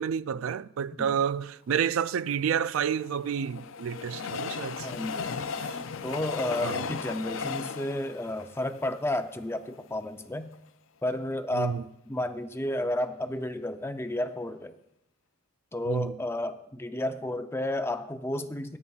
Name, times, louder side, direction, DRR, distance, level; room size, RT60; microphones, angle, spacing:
voice 1, 0.0-4.9 6.6-6.8 11.5-11.8 15.9-16.1, right 7 dB, 80° right, 0.3 m, -29 dB
Train, 2.4-9.7 10.2-10.3 10.5-10.6, left 5 dB, 70° left, 0.5 m, -36 dB
voice 2, 4.8-5.5 6.0-10.5 11.0-11.8 12.1-14.8 15.7-18.8, left 1 dB, 10° left, 0.5 m, -32 dB
sound 1, 5.0-7.0, equal, 50° right, 3.7 m, -51 dB
18.5 x 9.6 x 2.4 m
head